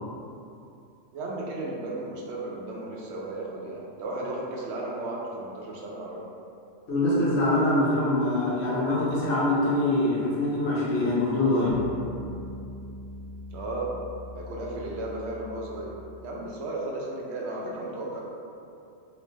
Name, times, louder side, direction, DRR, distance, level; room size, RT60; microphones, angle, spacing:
voice 1, 1.1-6.2 13.5-13.9 14.3-16.0 16.2-18.2, right 2 dB, 70° right, -3 dB, 0.8 m, -34 dB
voice 2, 6.9-11.8, left 1 dB, 65° left, -9 dB, 1.2 m, -24 dB
sound 1, 11.7-16.5, left 1 dB, 90° left, 1.1 m, -41 dB
3.2 x 2.8 x 3.1 m, 2.6 s
omnidirectional pair, 1.2 m